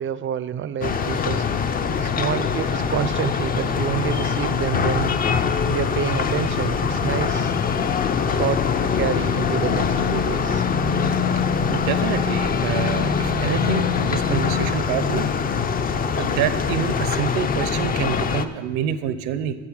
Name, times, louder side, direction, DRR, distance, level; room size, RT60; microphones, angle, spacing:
voice 1, 0.0-1.5 1.9-5.1 5.7-7.5 8.4-10.6, right 9 dB, 35° right, 16 dB, 0.4 m, -28 dB
sound 1, 0.8-18.5, left 6 dB, 25° left, 0.4 m, -23 dB
voice 2, 11.4-15.4 16.2-19.5, right 9 dB, 90° right, 12 dB, 0.8 m, -27 dB
8.8 x 8.0 x 6.4 m, 1.4 s
cardioid pair, 115°, 37 cm